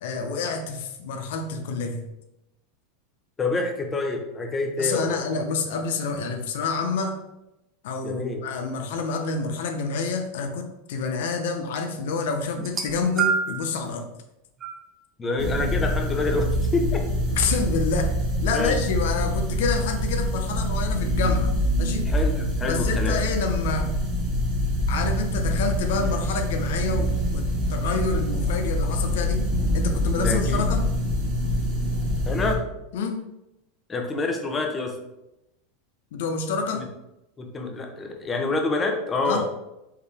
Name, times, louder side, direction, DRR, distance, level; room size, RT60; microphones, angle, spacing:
voice 1, 0.0-2.0 4.8-7.2 7.8-14.1 17.3-18.1 18.4-21.5 21.8-22.1 22.6-23.9 24.9-29.5 29.7-30.8 32.9-33.2 36.1-36.8 39.3-39.4, left 4 dB, 75° left, 6 dB, 0.6 m, -28 dB
voice 2, 3.4-5.4 8.0-8.4 15.2-17.0 18.5-18.8 22.1-23.2 30.1-30.6 32.3-32.6 33.9-34.9 36.7-36.8 37.4-39.4, left 3 dB, 25° left, 4 dB, 0.9 m, -27 dB
sound 1, 12.6-13.7 14.6-14.8 15.8-15.9, right 6 dB, 25° right, 0.7 m, -26 dB
sound 2, 15.4-32.6, equal, 45° right, 1.1 m, -25 dB
4.7 x 3.3 x 3.4 m, 0.91 s
hypercardioid pair, 110°, 0 cm